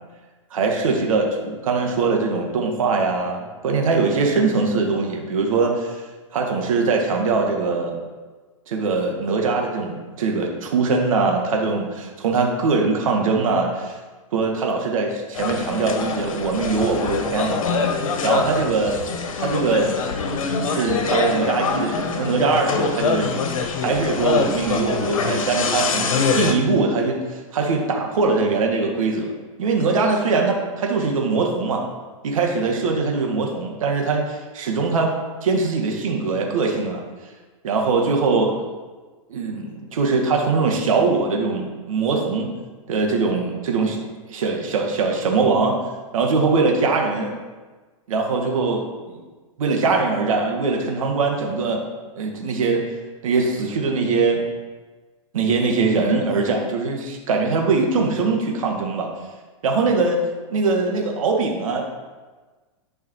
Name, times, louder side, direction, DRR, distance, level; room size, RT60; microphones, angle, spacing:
voice 1, 0.5-6.0 6.3-8.0 8.7-14.0 14.3-17.6 18.2-19.0 19.4-19.9 20.6-23.3 23.8-29.3 29.6-31.8 32.2-35.1 35.4-37.0 37.6-38.7 39.3-42.5 42.9-44.0 44.3-45.8 46.1-47.3 48.1-49.2 49.6-51.8 52.2-52.8 53.2-54.4 55.3-59.1 59.6-60.2 60.5-61.9, right 4 dB, 80° right, 1 dB, 2.0 m, -22 dB
sound 1, 15.3-26.5, left 5 dB, 80° left, 1.5 m, -24 dB
11.0 x 5.7 x 4.8 m, 1.3 s
hypercardioid pair, 135°, 17 cm